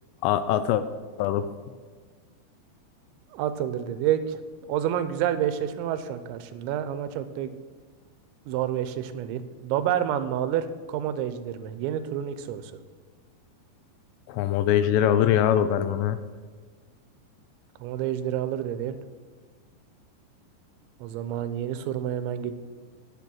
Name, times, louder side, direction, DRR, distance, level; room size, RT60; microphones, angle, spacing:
voice 1, 0.2-0.9 1.2-1.5 14.3-16.2, left 10 dB, 85° left, 12 dB, 2.6 m, -22 dB
voice 2, 3.3-7.5 8.5-12.7 17.8-19.0 21.0-22.5, right 10 dB, 90° right, 12 dB, 3.0 m, -29 dB
8.6 x 8.4 x 6.2 m, 1.5 s
omnidirectional pair, 5.2 m